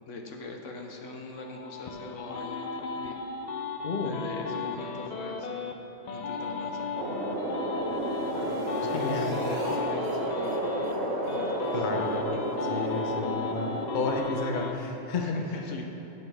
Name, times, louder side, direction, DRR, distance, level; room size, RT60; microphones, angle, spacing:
voice 1, 0.1-3.2 3.9-5.7 6.1-6.9 8.3-10.7 11.3-11.9 12.3-12.4 15.2-15.9, left 2 dB, 75° left, 2 dB, 1.1 m, -42 dB
sound 1, 1.4-5.7 6.1-10.9 11.3-14.7, left 5 dB, 90° left, 0.3 m, -36 dB
voice 2, 3.8-4.1 8.9-9.3 11.7-12.1 12.7-15.7, left 3 dB, 40° left, 1 dB, 0.8 m, -31 dB
sound 2, 7.0-14.2, right 1 dB, 85° right, 1.4 m, -31 dB
sound 3, 7.7-9.8 10.0-10.2 10.4-10.6 10.8-11.0 11.2-11.4 11.6-11.8 12.0-12.1 12.4-12.5 12.8-12.9, right 1 dB, 65° right, 1.8 m, -44 dB
10.5 x 8.2 x 3.3 m, 2.9 s
omnidirectional pair, 1.3 m